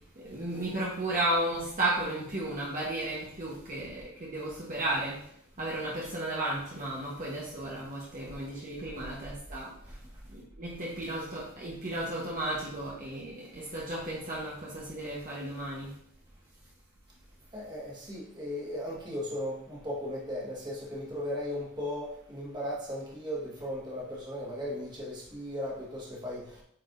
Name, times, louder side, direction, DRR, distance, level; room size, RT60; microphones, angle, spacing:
voice 1, 0.1-5.3 5.6-10.0 10.3-16.0, right 1 dB, 40° right, -5 dB, 1.2 m, -34 dB
voice 2, 17.5-19.5 19.8-22.1 22.3-26.4, left 1 dB, 20° right, -4 dB, 1.7 m, -36 dB
8.6 x 4.7 x 2.6 m, 0.67 s
head